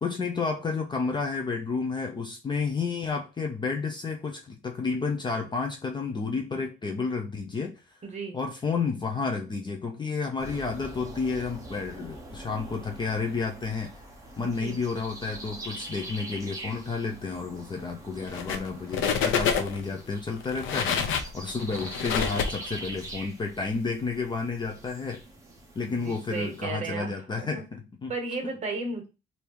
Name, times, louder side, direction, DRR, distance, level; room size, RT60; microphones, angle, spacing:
voice 1, 0.0-7.7 8.3-13.9 14.4-25.2 25.7-28.1 28.4-28.5, left 4 dB, 20° left, 3 dB, 0.5 m, -31 dB
voice 2, 8.0-8.4 14.4-14.8 26.0-27.1 27.4-27.5 28.1-29.1, right 3 dB, 35° right, 3 dB, 1.3 m, -34 dB
sound 1, 10.4-26.6, right 1 dB, 15° right, 0.7 m, -43 dB
sound 2, 18.3-18.7 18.9-19.9 20.4-23.1, left 6 dB, 80° left, 0.7 m, -27 dB
3.4 x 2.7 x 4.5 m, 0.29 s
cardioid pair, 160°, 20 cm